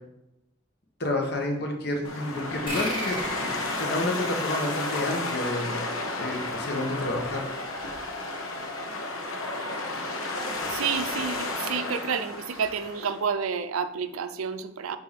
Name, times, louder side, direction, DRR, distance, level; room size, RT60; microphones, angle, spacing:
voice 1, 1.0-5.8 6.2-7.4, left 1 dB, 50° left, 2 dB, 1.1 m, -30 dB
sound 1, 2.0-13.2, left 2 dB, 75° left, 0.8 m, -32 dB
sound 2, 2.7-5.7, equal, 25° left, 1.9 m, -36 dB
voice 2, 10.7-15.0, right 6 dB, 85° right, 11 dB, 0.5 m, -30 dB
7.7 x 2.7 x 5.0 m, 0.87 s
head